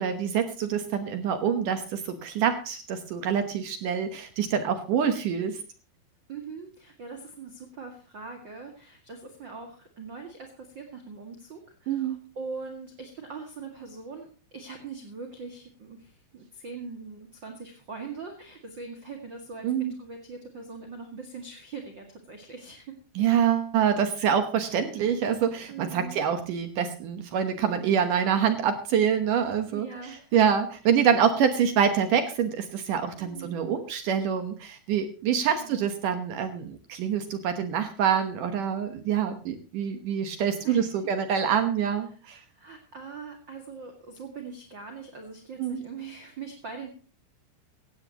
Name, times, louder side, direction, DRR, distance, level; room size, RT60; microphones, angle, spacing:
voice 1, 0.0-5.6 11.9-12.2 19.6-19.9 23.2-29.9 30.3-42.4 45.6-45.9, right 8 dB, 65° right, 8 dB, 2.2 m, -26 dB
voice 2, 6.3-23.0 25.7-26.2 29.7-30.4 31.2-31.6 33.2-33.6 35.6-35.9 40.6-40.9 42.1-42.2 42.5-46.9, right 4 dB, 40° right, 3 dB, 1.8 m, -42 dB
17.0 x 15.5 x 3.0 m, 0.36 s
omnidirectional pair, 4.8 m